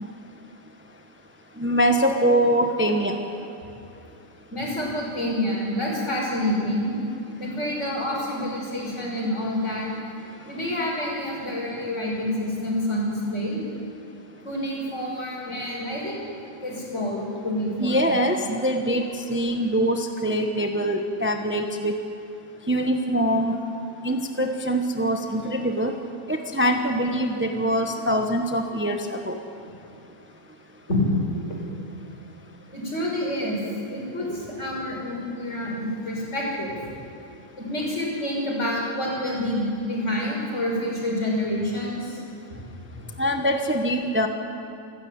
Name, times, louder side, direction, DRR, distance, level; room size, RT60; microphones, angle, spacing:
voice 1, 1.6-3.2 17.8-21.9 22.7-23.6 24.0-26.0 26.3-29.4 43.2-44.3, equal, 10° right, 4 dB, 1.1 m, -23 dB
voice 2, 4.5-6.9 7.4-9.9 10.5-13.6 14.4-16.2 16.6-18.0 30.9-31.0 31.5-31.6 32.7-33.6 33.9-36.8 37.6-42.2 42.9-43.0, left 1 dB, 55° left, -2 dB, 6.1 m, -28 dB
28.5 x 13.0 x 8.9 m, 2.7 s
omnidirectional pair, 1.5 m